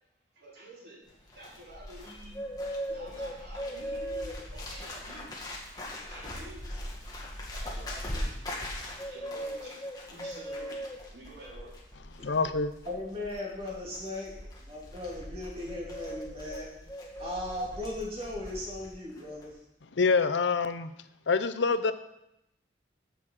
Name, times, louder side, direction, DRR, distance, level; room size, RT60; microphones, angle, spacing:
voice 1, 0.3-1.0 1.3-2.4 2.9-5.3 5.6-5.7 6.1-6.7 7.2-11.8, right 1 dB, 60° right, -5 dB, 3.8 m, -49 dB
Bird, 1.1-18.9 19.2-19.5, equal, 20° left, 1.8 m, -39 dB
voice 2, 12.1-12.7 19.9-20.9 21.3-21.9, left 4 dB, 70° left, 11 dB, 0.6 m, -26 dB
voice 3, 12.9-16.7 17.2-19.6, left 1 dB, 30° right, -4 dB, 3.0 m, -37 dB
8.4 x 6.4 x 7.5 m, 0.84 s
head